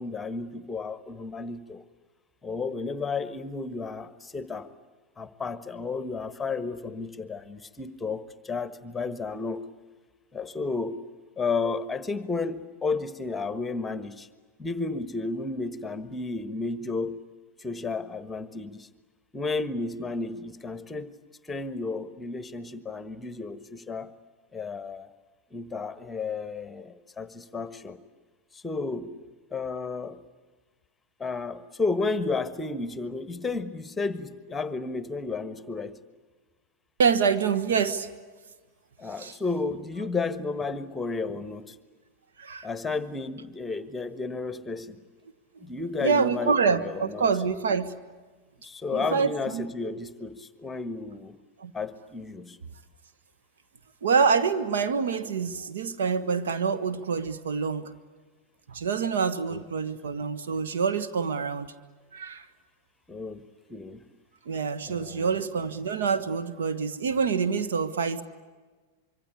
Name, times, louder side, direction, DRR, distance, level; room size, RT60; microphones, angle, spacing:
voice 1, 0.0-1.8 2.4-4.7 5.2-9.6 10.3-11.0 11.4-14.3 14.6-17.2 17.6-18.9 19.3-21.2 21.5-24.1 24.5-25.1 25.5-28.0 28.5-29.1 29.5-30.2 31.2-35.9 39.0-41.7 42.6-45.0 45.6-47.3 48.6-51.4 51.7-52.6 59.5-59.6 63.1-64.0 64.9-65.4, left 4 dB, 10° left, 13 dB, 1.4 m, -32 dB
voice 2, 37.0-38.1 39.2-39.3 42.4-42.7 46.0-47.9 48.9-49.9 51.6-51.7 54.0-57.9 58.7-61.7 62.1-62.5 64.4-68.2, right 5 dB, 60° right, 9 dB, 1.4 m, -26 dB
25.5 x 24.0 x 8.4 m, 1.4 s
figure-of-eight pair, 90°, 0 cm